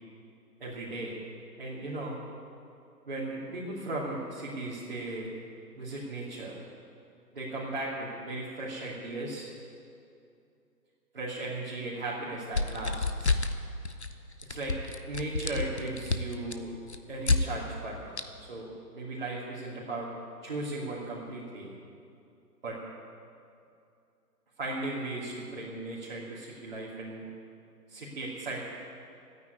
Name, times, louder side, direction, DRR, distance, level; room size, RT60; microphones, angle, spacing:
voice 1, 0.6-1.2 1.6-2.2 3.1-5.3 5.7-6.6 7.3-9.4 11.1-13.3 14.5-14.8 15.1-16.7 17.1-18.1 18.4-18.7 18.9-20.1 20.4-21.7 22.6-22.8 24.6-27.2 27.9-28.7, right 2 dB, 35° right, -8 dB, 2.9 m, -37 dB
sound 1, 12.5-13.6 13.8-14.1 14.4-17.4 18.2-18.3, left 3 dB, 45° left, 0.8 m, -29 dB
14.5 x 9.6 x 9.5 m, 2.5 s
hypercardioid pair, 175°, 49 cm